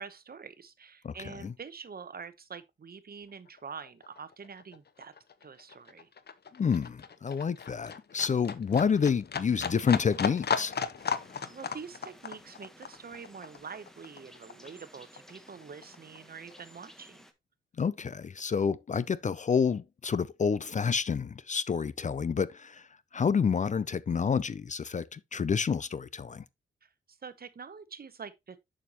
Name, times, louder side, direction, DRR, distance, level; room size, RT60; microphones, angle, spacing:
voice 1, 0.0-5.1 5.4-6.1 11.5-17.3 26.8-28.6, right 6 dB, 50° right, 0.9 m, -46 dB
Livestock farm animals working animals, 3.5-3.6 3.9-14.8 15.2-16.2 16.5-16.6, left 6 dB, 55° left, 0.8 m, -36 dB
voice 2, 6.6-10.7 17.8-22.9 23.1-26.4, left 6 dB, 35° left, 0.4 m, -29 dB
sound 1, 11.0-17.3, equal, ahead, 1.2 m, -56 dB
6.9 x 6.5 x 2.9 m
cardioid pair, 65°, 21 cm